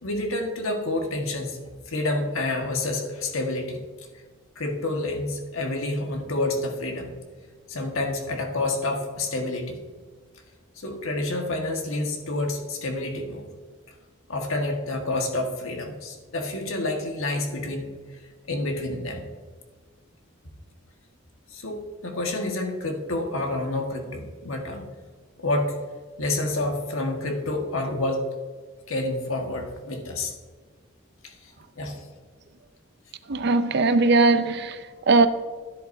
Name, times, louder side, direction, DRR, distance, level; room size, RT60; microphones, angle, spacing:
voice 1, 0.0-1.6 1.9-3.8 4.5-7.1 7.7-9.8 10.8-13.4 14.3-17.9 18.5-19.2 21.5-24.9 25.4-25.8 26.2-28.2 28.9-30.3 31.2-31.5 31.8-32.0, left 2 dB, 75° left, 1.6 m, -28 dB
voice 2, 33.3-35.3, right 3 dB, 50° right, 0.5 m, -20 dB
12.5 x 10.5 x 2.7 m
head